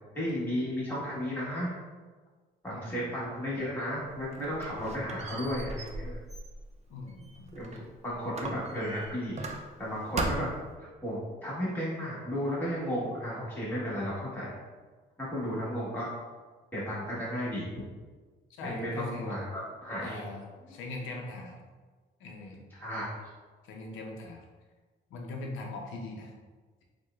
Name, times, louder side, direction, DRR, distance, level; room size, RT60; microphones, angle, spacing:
voice 1, 0.1-1.8 2.6-6.2 7.5-10.5 10.8-14.5 15.2-16.1 16.7-17.8 18.6-20.3 22.7-23.0, equal, 10° left, -8 dB, 1.3 m, -34 dB
voice 2, 2.7-3.1 6.9-7.6 18.6-19.4 20.0-21.5 22.2-22.6 23.6-24.4 25.1-26.3, left 3 dB, 90° left, 1 dB, 0.6 m, -41 dB
Squeak, 4.1-7.9 8.3-9.9 10.2-10.7, right 2 dB, 35° right, 0.4 m, -38 dB
4.3 x 2.2 x 2.3 m, 1.4 s
cardioid pair, 90°, 20 cm